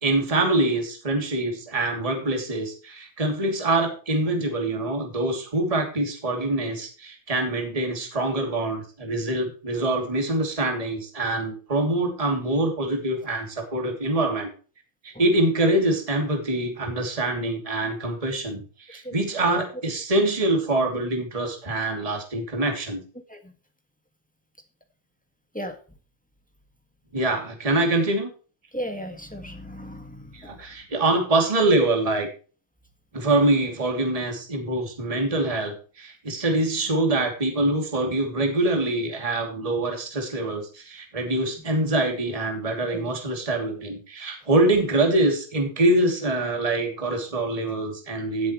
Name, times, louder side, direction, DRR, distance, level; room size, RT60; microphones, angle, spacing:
voice 1, 0.0-14.5 15.0-23.0 27.1-28.3 30.3-32.3 33.1-48.5, right 2 dB, 10° right, 3 dB, 2.5 m, -24 dB
voice 2, 28.7-30.5 42.9-43.1, equal, 5° left, 5 dB, 0.8 m, -35 dB
17.0 x 7.9 x 3.1 m, 0.38 s
omnidirectional pair, 3.4 m